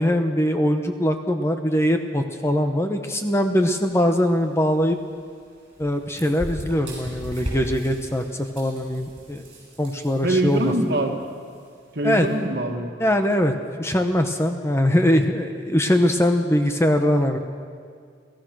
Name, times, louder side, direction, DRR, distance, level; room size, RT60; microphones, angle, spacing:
voice 1, 0.0-5.0 5.8-9.4 9.8-10.7 12.0-12.3 13.0-13.5 13.8-17.4, equal, 15° left, 5 dB, 1.0 m, -21 dB
sound 1, 3.7-12.4, equal, 30° right, 7.3 m, -39 dB
voice 2, 10.2-11.3 11.9-12.9, right 1 dB, 55° right, 2 dB, 2.3 m, -23 dB
30.0 x 15.5 x 6.3 m, 2.1 s
head